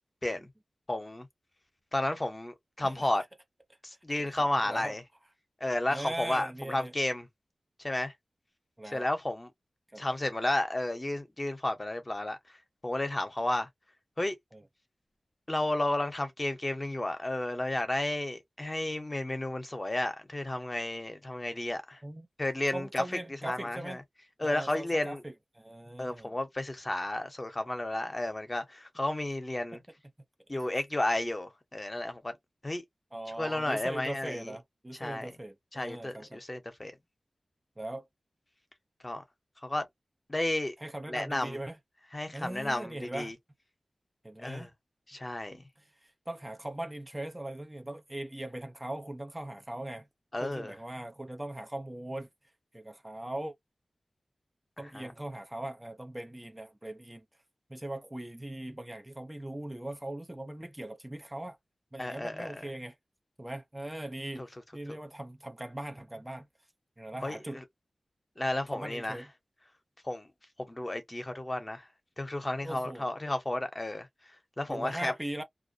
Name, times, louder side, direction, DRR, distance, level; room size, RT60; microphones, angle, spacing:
voice 1, 0.9-1.3 1.9-3.2 3.8-5.0 5.6-7.3 7.8-8.1 8.9-9.5 10.0-12.4 12.8-13.7 14.2-14.4 15.5-22.0 22.4-23.0 23.4-24.0 24.4-25.2 26.0-29.8 30.5-32.3 32.6-32.8 33.4-34.5 35.0-35.3 35.7-36.9 39.0-39.2 39.6-39.9 40.3-40.7 41.1-41.6 42.1-43.3 44.4-44.7 45.1-45.6 50.3-50.8 54.9-55.1 62.0-62.7 64.4-64.5 67.2-67.6 68.4-69.2 70.0-70.3 70.6-71.9 72.2-74.1 74.6-75.1, left 1 dB, 30° left, 0.8 m, -32 dB
voice 2, 2.8-3.2 4.6-5.0 5.9-6.9 8.8-9.1 9.9-10.0 14.5-14.6 22.0-22.3 22.7-24.0 24.4-26.3 33.1-36.4 37.8-38.1 40.8-41.8 42.3-43.3 44.2-44.7 45.5-50.1 50.4-52.3 52.7-53.5 54.8-57.2 57.7-61.6 61.9-63.0 63.4-66.5 67.0-67.6 68.7-69.3 72.6-73.1 74.7-75.4, right 1 dB, 20° right, 0.5 m, -40 dB
2.3 x 2.1 x 2.5 m
wide cardioid pair, 60°, 0 cm